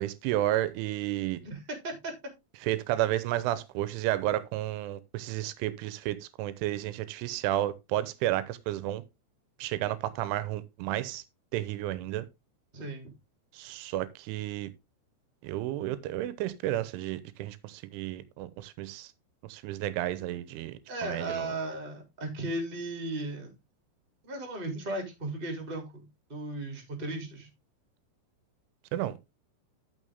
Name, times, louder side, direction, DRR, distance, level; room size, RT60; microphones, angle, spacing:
voice 1, 0.0-1.4 2.6-9.0 9.6-11.2 11.5-12.3 13.5-14.7 15.4-19.1 19.4-21.5 28.9-29.1, right 14 dB, 85° right, 3.3 m, -32 dB
voice 2, 1.4-2.1 12.7-13.1 20.9-23.5 24.2-26.0 26.3-27.5, right 2 dB, 15° right, 2.3 m, -36 dB
13.0 x 6.3 x 3.6 m
omnidirectional pair, 5.7 m